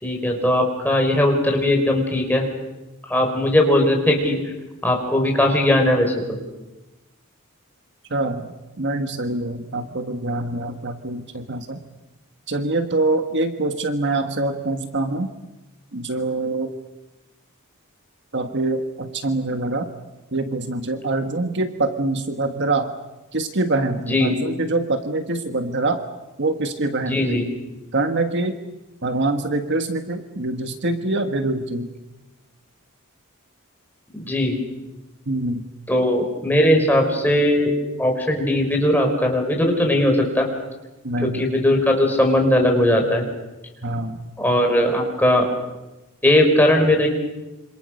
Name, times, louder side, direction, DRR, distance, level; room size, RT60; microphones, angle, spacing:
voice 1, 0.0-2.4 3.1-4.4 4.8-6.1 24.1-24.3 27.1-27.4 34.1-34.6 35.9-37.7 38.0-40.5 41.2-43.2 44.4-45.4 46.2-47.1, left 1 dB, 10° left, 2 dB, 5.2 m, -19 dB
voice 2, 8.1-11.8 12.5-15.3 15.9-16.7 18.3-19.9 20.3-22.9 23.3-26.0 26.4-27.4 27.9-28.6 29.0-31.9 35.3-35.6 41.0-41.4 43.8-44.2, right 2 dB, 50° right, 7 dB, 1.6 m, -24 dB
27.0 x 26.5 x 6.6 m, 1.1 s
head